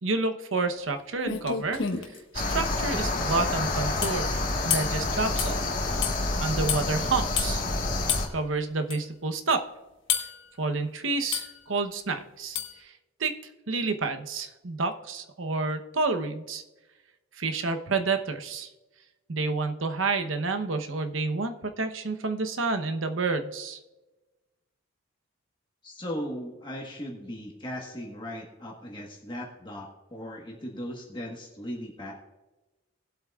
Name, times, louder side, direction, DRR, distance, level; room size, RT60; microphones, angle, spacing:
voice 1, 0.0-5.6 6.4-7.6 8.3-9.7 10.6-12.9 13.2-13.3 13.7-16.6 17.4-18.7 19.3-23.8, right 3 dB, 85° right, 7 dB, 1.0 m, -29 dB
sound 1, 0.9-1.0 1.2-2.2 4.0-4.2 4.7-5.0 5.4-5.6 6.0-6.2 6.7-6.8 7.4-7.5 8.1-8.3 8.9-9.0 10.1-10.4 11.3-11.6 12.5-12.8, left 8 dB, 75° left, 1.3 m, -29 dB
sound 2, 2.3-8.3, left 2 dB, 45° left, 1.6 m, -28 dB
voice 2, 25.8-32.1, equal, 25° left, -1 dB, 1.4 m, -38 dB
20.0 x 8.0 x 2.4 m, 1.1 s
head